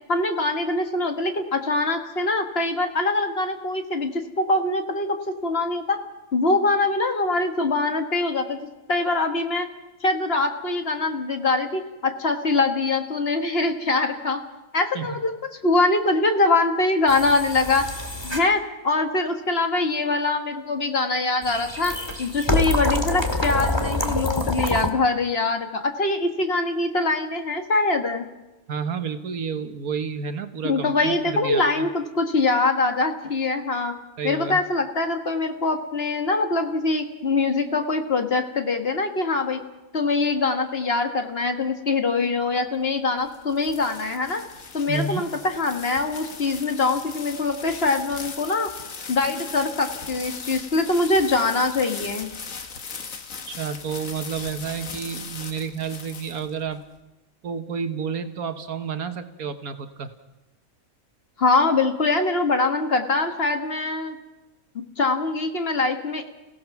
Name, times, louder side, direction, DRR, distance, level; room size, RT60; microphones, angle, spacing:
voice 1, 0.1-5.2 5.4-6.0 6.3-8.6 8.9-9.7 10.0-14.4 14.7-15.3 15.6-17.9 18.2-18.6 18.8-28.3 30.6-33.9 34.2-39.6 39.9-44.4 44.7-48.7 49.1-52.3 61.4-64.1 65.0-66.3, left 3 dB, 45° left, 5 dB, 1.7 m, -23 dB
sound 1, 17.1-18.4 21.4-24.9, left 1 dB, 20° left, 1.8 m, -26 dB
voice 2, 28.7-31.9 34.2-34.6 44.9-45.2 53.5-56.8 57.4-60.1, right 6 dB, 75° right, 8 dB, 1.6 m, -30 dB
sound 2, 43.0-56.8, left 5 dB, 60° left, 1.8 m, -38 dB
29.0 x 16.5 x 5.9 m, 1.0 s
omnidirectional pair, 1.6 m